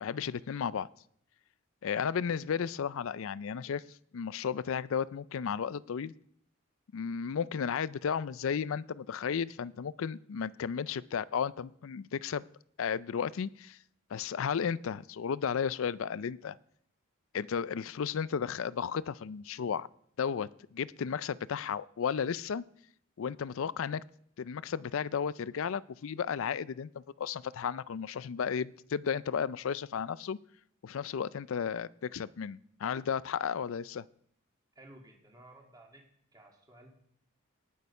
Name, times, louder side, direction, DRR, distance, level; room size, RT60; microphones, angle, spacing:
voice 1, 0.0-0.9 1.8-6.1 6.9-12.4 12.8-13.8 14.1-16.6 17.3-19.9 20.2-22.6 23.2-24.0 24.4-30.4 30.8-34.1, left 7 dB, 70° left, 19 dB, 0.4 m, -34 dB
voice 2, 34.7-36.1 36.3-36.9, right 1 dB, 20° right, 0 dB, 2.3 m, -55 dB
19.0 x 6.6 x 5.4 m, 0.68 s
head